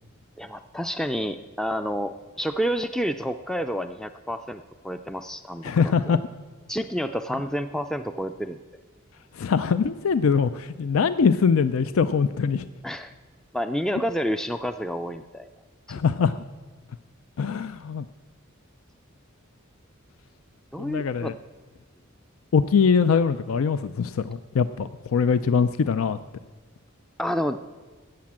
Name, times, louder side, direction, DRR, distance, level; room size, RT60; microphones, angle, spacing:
voice 1, 0.4-6.2 6.7-8.6 12.8-13.1 13.5-15.5 15.9-16.0 20.7-21.3 27.2-27.6, equal, 5° left, 9 dB, 0.3 m, -29 dB
voice 2, 5.6-6.2 9.3-12.6 15.9-16.3 17.4-18.0 20.8-21.3 22.5-26.2, left 6 dB, 85° left, 13 dB, 0.4 m, -22 dB
13.5 x 8.5 x 8.7 m, 1.3 s
head